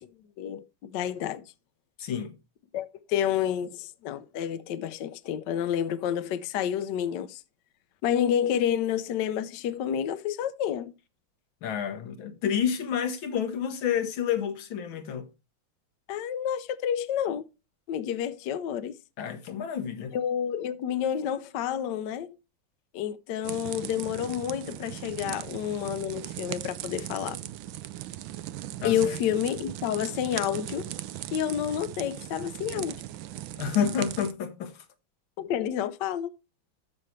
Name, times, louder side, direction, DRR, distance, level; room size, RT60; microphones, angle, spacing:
voice 1, 0.4-1.4 2.7-7.4 8.0-10.9 16.1-17.4 17.9-19.0 20.1-22.4 22.9-27.4 28.8-30.9 31.3-33.0 35.4-36.3, left 9 dB, 70° left, 1.2 m, -29 dB
voice 2, 2.0-2.3 11.6-15.3 19.2-20.1 28.8-29.0 33.6-34.8, left 8 dB, 90° left, 1.9 m, -29 dB
sound 1, 23.4-34.3, right 14 dB, 80° right, 1.4 m, -38 dB
13.5 x 5.4 x 3.1 m
omnidirectional pair, 2.1 m